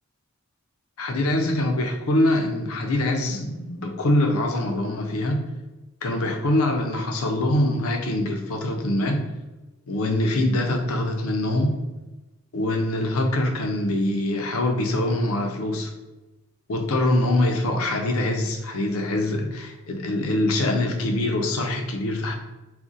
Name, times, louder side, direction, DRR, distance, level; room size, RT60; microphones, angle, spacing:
voice 1, 1.0-5.4 6.0-9.2 9.9-11.8 12.5-15.9 16.7-22.4, left 1 dB, 75° left, 4 dB, 0.5 m, -24 dB
2.4 x 2.1 x 3.9 m, 1.1 s
head